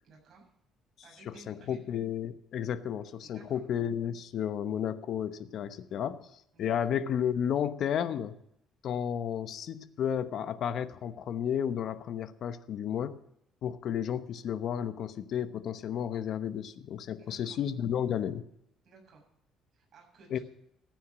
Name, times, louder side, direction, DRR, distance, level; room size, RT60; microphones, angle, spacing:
voice 1, 0.0-0.4 1.0-1.8 3.2-3.6 6.5-6.9 17.2-17.6 18.8-19.2 19.7-20.4, right 3 dB, 45° right, -1 dB, 7.2 m, -56 dB
voice 2, 1.2-8.4 8.8-13.2 13.6-18.4 20.3-20.4, left 9 dB, 55° left, 12 dB, 0.9 m, -32 dB
15.0 x 9.3 x 7.4 m, 0.75 s
cardioid pair, 135°, 0 cm